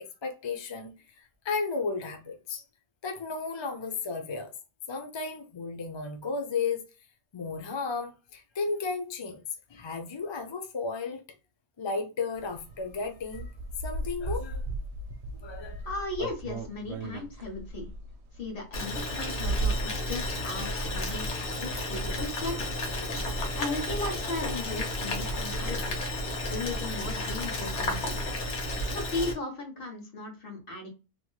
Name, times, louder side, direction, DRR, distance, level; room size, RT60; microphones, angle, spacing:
voice 1, 0.0-2.6 3.0-4.5 4.9-7.1 7.3-9.4 9.7-11.2 11.8-13.5 13.8-14.7 15.3-15.8, left 4 dB, 40° left, 0.4 m, -34 dB
sound 1, 12.3-26.5, right 1 dB, 80° right, 0.8 m, -41 dB
voice 2, 15.8-17.9 18.3-22.7 23.6-26.0 26.5-28.2 28.9-30.9, left 3 dB, 55° left, 1.4 m, -36 dB
Boiling, 18.7-29.3, left 1 dB, 85° left, 1.3 m, -31 dB
3.0 x 2.9 x 2.2 m
omnidirectional pair, 1.1 m